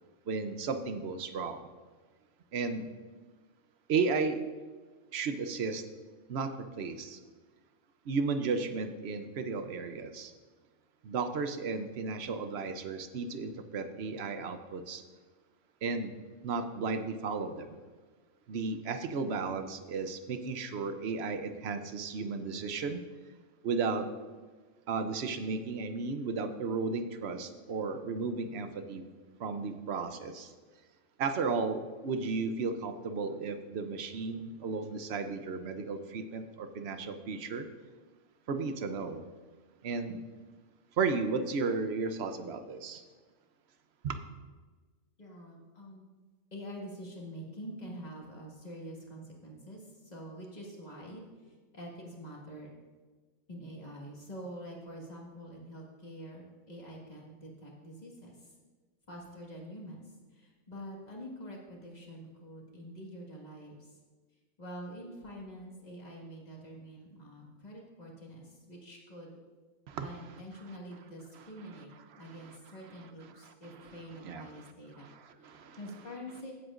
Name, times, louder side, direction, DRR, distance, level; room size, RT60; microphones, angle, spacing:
voice 1, 0.3-1.7 2.5-2.9 3.9-4.4 5.1-5.8 6.3-7.2 8.1-10.3 11.0-15.0 15.8-16.1 16.4-17.8 18.5-23.0 23.6-24.1 24.9-29.0 29.4-30.5 31.2-37.7 38.5-39.2 39.8-40.2 41.0-43.0 44.0-44.2 69.9-70.1 72.1-72.6 73.5-73.6 74.2-74.7 75.0-75.8, right 4 dB, 60° right, 9 dB, 0.9 m, -34 dB
voice 2, 45.2-46.1 46.5-52.7 53.5-58.5 59.1-64.0 64.6-69.4 70.0-71.9 72.2-75.1 75.4-76.5, equal, 30° left, -2 dB, 1.9 m, -46 dB
17.0 x 7.9 x 2.5 m, 1.4 s
omnidirectional pair, 1.4 m